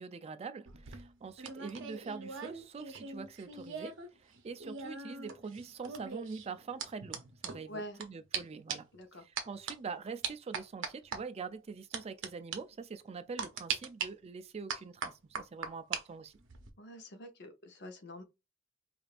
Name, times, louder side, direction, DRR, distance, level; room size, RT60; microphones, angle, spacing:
voice 1, 0.0-3.9 4.2-8.9 9.2-16.3, right 5 dB, 30° right, 0.4 m, -44 dB
sound 1, 0.7-4.1 4.3-8.1 8.3-8.4 8.7-9.0 9.4-9.7 10.2-11.2 11.9-12.3 12.5-12.6 13.4-14.1 14.7-16.0 16.3-16.7, right 6 dB, 65° right, 0.7 m, -40 dB
voice 2, 7.7-8.0 8.9-9.2 16.8-18.2, equal, 60° left, 0.8 m, -46 dB
4.9 x 2.5 x 2.4 m
head